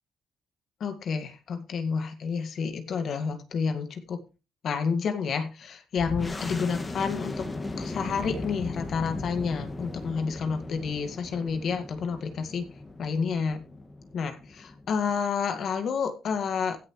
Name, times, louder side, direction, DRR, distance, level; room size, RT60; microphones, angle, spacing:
voice 1, 0.8-4.2 4.6-7.4 7.8-12.7 13.0-13.7 14.1-16.8, left 6 dB, 60° left, 7 dB, 1.9 m, -30 dB
sound 1, 6.0-15.2, left 2 dB, 25° left, 2.0 m, -37 dB
16.0 x 6.9 x 3.2 m, 0.30 s
cardioid pair, 90°, 0 cm